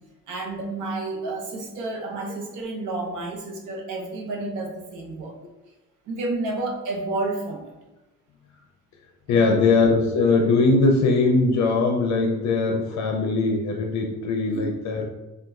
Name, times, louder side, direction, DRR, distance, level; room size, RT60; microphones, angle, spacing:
voice 1, 0.3-5.4 6.1-7.7 9.3-9.6 14.5-14.7, right 2 dB, 80° right, 0 dB, 0.8 m, -30 dB
voice 2, 9.3-15.1, left 3 dB, 65° left, 2 dB, 0.5 m, -21 dB
3.9 x 2.3 x 2.3 m, 1.1 s
cardioid pair, 90°, 30 cm